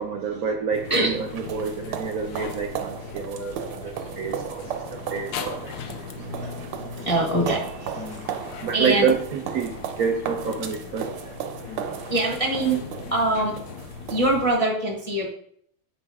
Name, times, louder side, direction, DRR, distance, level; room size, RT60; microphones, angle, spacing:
voice 1, 0.0-4.6 5.1-5.7 8.6-9.7 10.0-11.1, right 6 dB, 70° right, 3 dB, 0.8 m, -27 dB
sound 1, 0.7-14.5, left 7 dB, 75° left, 0.9 m, -39 dB
sound 2, 0.9-14.6, right 9 dB, 90° right, 1.6 m, -36 dB
voice 2, 6.1-8.2 8.7-9.1 12.1-12.8 13.1-13.5 14.1-15.3, right 2 dB, 30° left, -1 dB, 0.7 m, -24 dB
7.5 x 5.4 x 3.5 m, 0.65 s
omnidirectional pair, 2.4 m